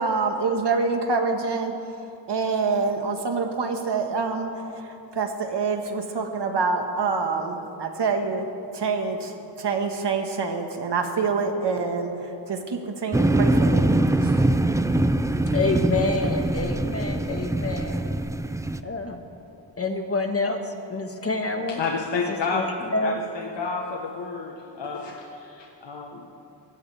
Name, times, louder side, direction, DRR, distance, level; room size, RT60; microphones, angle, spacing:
voice 1, 0.0-1.7 2.3-4.8 5.1-8.5 8.7-9.3 9.6-12.1 12.5-13.9 14.2-14.5, right 4 dB, 65° right, 4 dB, 1.7 m, -26 dB
sound 1, 13.1-18.8, right 1 dB, 5° right, 0.4 m, -23 dB
voice 2, 15.5-18.0 18.8-19.2 19.8-21.8 22.3-23.2, left 3 dB, 30° left, 4 dB, 1.6 m, -27 dB
voice 3, 21.8-26.3, left 4 dB, 70° left, -1 dB, 1.4 m, -30 dB
23.5 x 16.0 x 3.5 m, 2.7 s
wide cardioid pair, 110°, 44 cm